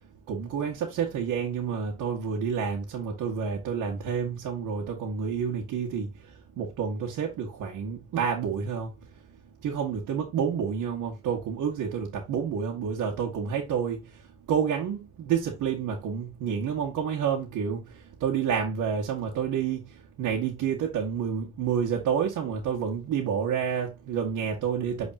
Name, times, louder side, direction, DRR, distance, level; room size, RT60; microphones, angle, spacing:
voice 1, 0.3-8.9 9.6-14.2 14.5-25.1, right 7 dB, 85° right, 1.9 m, -29 dB
8.7 x 4.3 x 2.8 m
cardioid pair, 90°, 30 cm